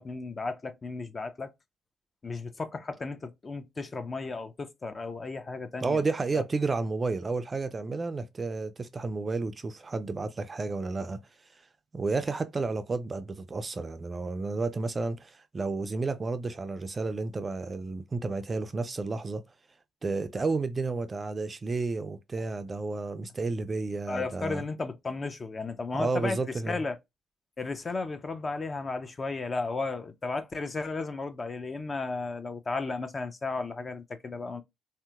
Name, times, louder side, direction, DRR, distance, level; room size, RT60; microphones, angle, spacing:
voice 1, 0.0-1.5 2.2-6.0 6.3-6.4 24.1-26.4 26.7-27.0 27.6-34.6, left 3 dB, 35° left, 0.4 m, -34 dB
voice 2, 5.8-11.2 11.9-19.4 20.0-24.6 25.9-26.8, right 3 dB, 30° right, 0.3 m, -31 dB
3.3 x 2.8 x 2.4 m
cardioid pair, 90°, 0 cm